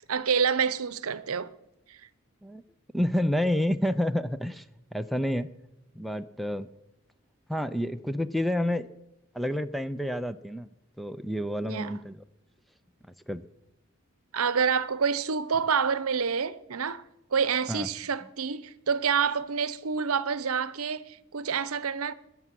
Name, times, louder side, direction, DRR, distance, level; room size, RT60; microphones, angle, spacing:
voice 1, 0.1-1.5 1.9-2.0 11.6-12.0 14.3-17.0 17.3-22.1, right 6 dB, 80° right, 0.8 m, -28 dB
voice 2, 2.9-4.6 4.9-5.5 6.0-6.7 7.5-8.9 9.3-10.7 11.0-12.2 13.3-13.4 17.7-17.9, equal, ahead, 0.5 m, -29 dB
21.0 x 7.3 x 7.6 m
head